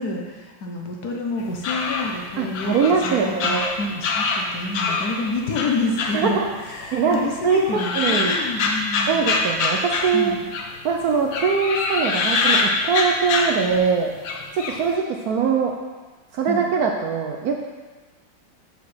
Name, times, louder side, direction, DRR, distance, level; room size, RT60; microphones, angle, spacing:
voice 1, 0.0-3.5 3.8-9.3 10.1-10.4 16.5-16.6, left 2 dB, 60° left, 1 dB, 1.4 m, -28 dB
sound 1, 1.4-5.2 5.6-6.8 7.1-10.8 11.3-13.9 14.2-14.8, left 4 dB, 80° left, 1.6 m, -24 dB
voice 2, 2.4-3.7 6.1-6.4 6.9-7.2 7.4-8.4 9.1-10.3 10.8-14.1 14.5-15.7 16.3-17.6, right 5 dB, 65° right, 1 dB, 1.0 m, -22 dB
6.1 x 5.7 x 6.2 m, 1.3 s
omnidirectional pair, 2.1 m